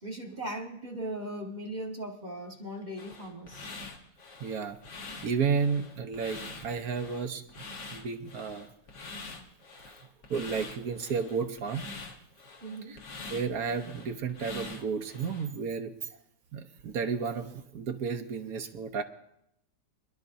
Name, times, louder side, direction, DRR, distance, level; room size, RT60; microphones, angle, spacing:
voice 1, 0.0-3.7 12.6-13.0, right 1 dB, 25° right, -1 dB, 1.5 m, -38 dB
sound 1, 3.0-15.5, left 3 dB, 75° left, 2.0 m, -45 dB
voice 2, 4.4-4.8 5.2-7.4 7.9-8.7 10.3-11.9 12.9-13.0 13.3-15.9 16.5-19.0, right 5 dB, 65° right, 6 dB, 1.2 m, -32 dB
25.0 x 11.0 x 2.7 m, 0.79 s
omnidirectional pair, 1.8 m